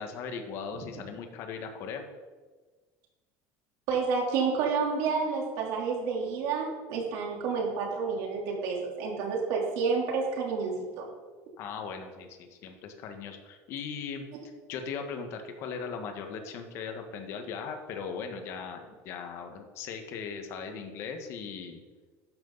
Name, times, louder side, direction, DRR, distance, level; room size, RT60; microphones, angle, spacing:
voice 1, 0.0-2.1 11.6-14.2 14.7-21.8, left 6 dB, 45° left, 5 dB, 1.6 m, -38 dB
voice 2, 3.9-11.0, right 5 dB, 60° right, -1 dB, 3.6 m, -29 dB
12.5 x 11.0 x 4.1 m, 1.4 s
cardioid pair, 165°, 6 cm